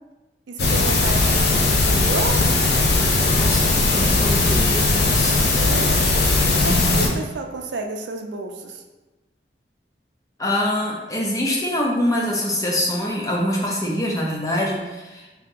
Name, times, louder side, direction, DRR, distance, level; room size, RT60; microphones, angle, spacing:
voice 1, 0.5-2.5 5.5-6.0 6.4-8.8, right 3 dB, 85° right, 3 dB, 0.4 m, -31 dB
sound 1, 0.6-7.1, left 3 dB, 70° left, 0.6 m, -18 dB
voice 2, 3.4-5.4 5.7-5.9 6.6-7.1 10.4-15.3, left 1 dB, 20° left, -2 dB, 0.5 m, -25 dB
2.9 x 2.7 x 3.6 m, 1.1 s
head